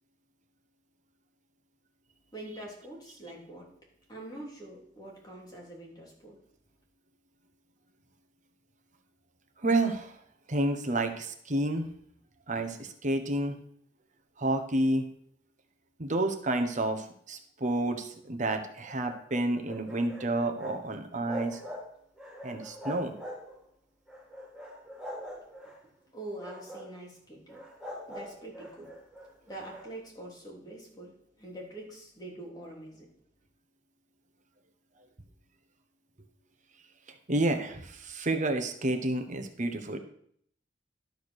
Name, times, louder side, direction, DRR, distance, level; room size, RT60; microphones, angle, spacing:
voice 1, 2.3-3.7 4.1-6.4 26.1-27.6 28.1-28.9 29.5-31.1 31.4-33.1, right 1 dB, 20° left, -3 dB, 3.2 m, -44 dB
voice 2, 9.6-10.2 10.5-11.9 12.5-13.5 14.4-15.0 16.0-21.6 22.4-23.1 37.3-40.0, right 2 dB, 45° right, 6 dB, 1.2 m, -30 dB
sound 1, 18.8-20.8 21.1-21.9 22.2-23.6 24.1-25.8 26.3-26.9 27.5-29.9, equal, ahead, 3.5 m, -43 dB
12.0 x 4.7 x 6.4 m, 0.65 s
head